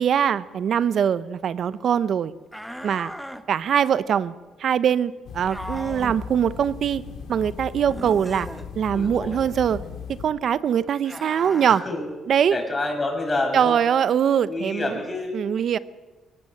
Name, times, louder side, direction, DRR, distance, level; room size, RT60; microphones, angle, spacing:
voice 1, 0.0-2.3 2.8-3.1 3.5-4.3 4.6-7.0 7.3-8.5 8.7-9.8 10.2-11.8 12.3-12.6 13.5-15.0 15.3-15.8, right 8 dB, 60° right, 15 dB, 0.9 m, -22 dB
sound 1, 2.5-3.4 5.5-6.2 7.8-8.7 11.0-11.8, equal, ahead, 1.4 m, -36 dB
sound 2, 5.3-10.3, left 7 dB, 75° left, 2.1 m, -37 dB
voice 2, 8.9-9.4 11.7-12.1 12.5-13.8 14.4-15.4, left 2 dB, 25° left, 3 dB, 6.5 m, -28 dB
21.5 x 18.5 x 8.0 m, 1.2 s
cardioid pair, 90°, 0 cm